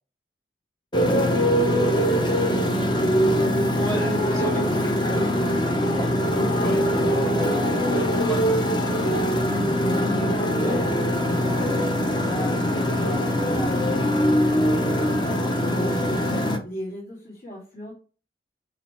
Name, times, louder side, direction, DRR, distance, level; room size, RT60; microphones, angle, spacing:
Motorcycle, 0.9-16.6, equal, 25° left, 0.9 m, -22 dB
voice 1, 1.9-2.8 6.3-7.1 9.7-13.8 15.2-16.2 16.6-17.9, left 1 dB, 55° left, -6 dB, 2.2 m, -36 dB
voice 2, 3.7-6.1 6.6-6.8 7.2-9.4, right 1 dB, 10° left, 0 dB, 1.2 m, -39 dB
8.5 x 3.2 x 4.5 m, 0.37 s
head